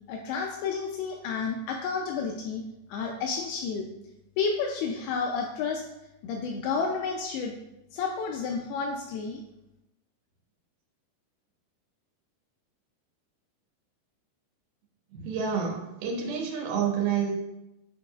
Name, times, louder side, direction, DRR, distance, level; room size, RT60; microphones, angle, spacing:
voice 1, 0.1-2.6 2.9-3.9 4.4-5.8 6.2-7.6 7.9-9.4, left 5 dB, 80° left, 2 dB, 2.4 m, -31 dB
voice 2, 15.1-17.3, right 7 dB, 75° right, -1 dB, 2.9 m, -29 dB
9.1 x 4.8 x 2.3 m, 0.91 s
omnidirectional pair, 4.6 m